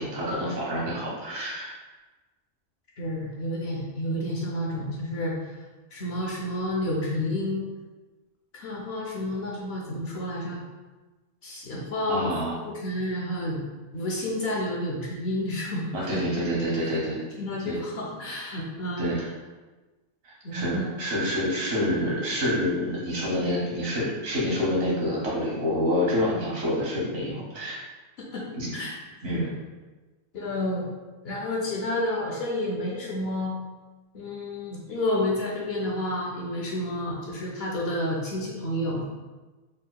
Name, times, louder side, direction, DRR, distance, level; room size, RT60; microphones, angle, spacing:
voice 1, 0.0-1.7 12.1-12.6 15.9-17.2 17.6-17.8 19.0-19.2 20.2-27.8 28.5-28.8 29.2-29.5, equal, 70° right, -6 dB, 1.6 m, -27 dB
voice 2, 3.0-5.5 5.9-7.6 8.5-10.6 11.4-13.6 13.9-16.2 17.4-19.3 20.4-20.9 28.3-28.4 28.7-28.9 29.3-29.5 30.3-30.9 31.2-33.5 34.1-39.0, left 1 dB, 55° left, -3 dB, 0.8 m, -30 dB
4.1 x 3.6 x 2.2 m, 1.2 s
omnidirectional pair, 1.5 m